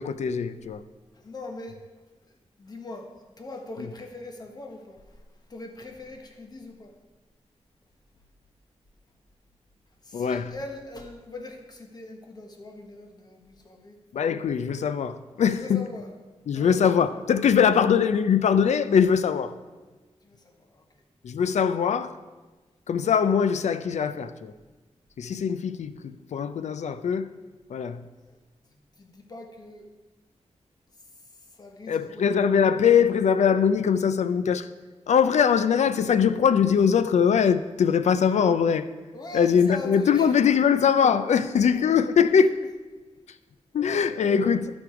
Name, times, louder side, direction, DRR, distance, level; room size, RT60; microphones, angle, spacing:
voice 1, 0.0-0.8 10.1-10.5 14.1-15.8 16.5-19.5 21.2-22.2 22.9-24.5 25.2-27.3 27.7-28.0 31.9-34.7 35.1-38.9 39.3-42.6 43.7-44.7, left 7 dB, 85° left, 0.5 m, -22 dB
voice 2, 0.8-1.8 2.3-3.1 3.4-5.2 5.5-6.9 10.0-14.0 15.5-16.1 16.5-16.9 20.2-21.0 28.3-28.4 28.7-29.9 31.1-32.5 39.1-40.4 41.6-41.9 43.8-44.6, left 2 dB, 35° left, 1.2 m, -41 dB
12.5 x 5.4 x 4.8 m
wide cardioid pair, 145°, 12 cm